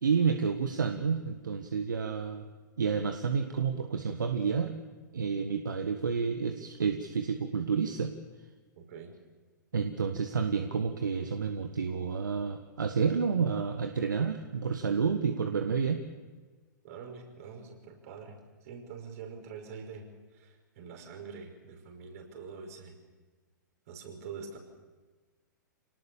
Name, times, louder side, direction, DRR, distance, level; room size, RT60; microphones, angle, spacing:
voice 1, 0.0-2.5 2.8-4.8 5.1-8.1 9.7-16.0, right 6 dB, 70° right, 6 dB, 1.6 m, -30 dB
voice 2, 8.8-9.1 16.8-23.0 23.9-24.6, right 5 dB, 50° right, 3 dB, 5.7 m, -45 dB
27.5 x 19.0 x 7.2 m, 1.4 s
figure-of-eight pair, 110°, 10 cm